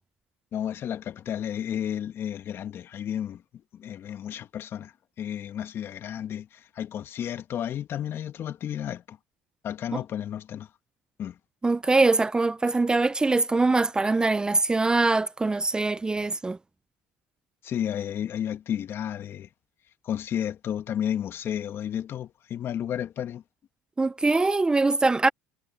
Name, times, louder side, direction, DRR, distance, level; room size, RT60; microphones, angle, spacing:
voice 1, 0.5-3.4 3.7-9.2 9.6-10.7 11.2-11.4 17.6-19.5 20.0-23.4, left 10 dB, 45° left, 1.9 m, -32 dB
voice 2, 11.6-16.6 24.0-25.3, right 3 dB, 15° right, 0.6 m, -23 dB
supercardioid pair, 85°, 5 cm